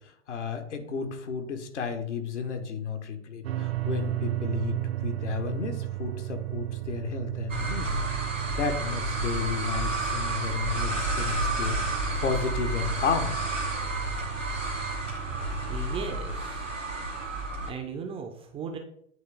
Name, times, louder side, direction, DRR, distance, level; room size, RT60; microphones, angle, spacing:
voice 1, 0.3-7.9 8.5-11.8 12.2-13.3, left 6 dB, 65° left, 6 dB, 1.2 m, -32 dB
sound 1, 3.4-15.8, right 16 dB, 55° right, 0.6 m, -35 dB
sound 2, 7.5-17.7, right 2 dB, 90° right, 1.7 m, -31 dB
voice 2, 15.7-16.6 17.7-18.8, right 6 dB, 15° right, 4 dB, 0.4 m, -36 dB
9.2 x 3.2 x 3.4 m, 0.69 s
figure-of-eight pair, 95°, 37 cm